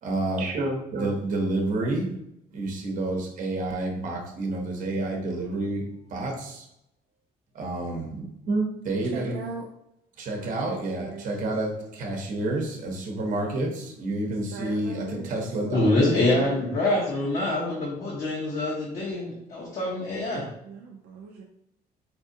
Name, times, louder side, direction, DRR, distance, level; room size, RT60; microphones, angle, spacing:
voice 1, 0.0-2.1 2.5-5.8 6.1-6.6 7.5-9.4 10.2-16.2, right 2 dB, 50° right, 1 dB, 0.9 m, -29 dB
voice 2, 9.0-9.7 10.4-11.5 14.5-15.3 16.1-16.6 20.6-21.4, right 4 dB, 75° right, 1 dB, 0.5 m, -40 dB
voice 3, 15.7-20.5, left 2 dB, 45° left, -5 dB, 0.9 m, -25 dB
4.3 x 2.4 x 2.7 m, 0.79 s
cardioid pair, 110°, 17 cm